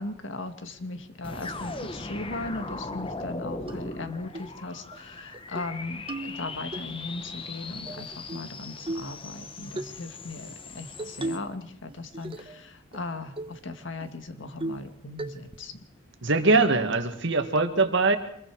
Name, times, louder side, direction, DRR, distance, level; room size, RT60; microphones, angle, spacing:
voice 1, 0.0-15.8, left 2 dB, 65° left, 8 dB, 1.8 m, -38 dB
sound 1, 1.2-11.4, left 3 dB, 25° left, 1.2 m, -39 dB
sound 2, 3.7-3.8 4.3-4.5 4.9-5.0 5.3-5.7 6.1-6.8 7.9-8.5 8.9-9.2 9.8-10.0 11.0-11.6 11.9-12.6 12.9-13.0 13.4-13.6 14.0-14.1 14.6-14.9 15.2-15.6, right 2 dB, 25° right, 1.2 m, -36 dB
voice 2, 16.2-18.2, right 3 dB, 60° right, 7 dB, 1.9 m, -22 dB
25.5 x 21.5 x 4.8 m, 0.67 s
head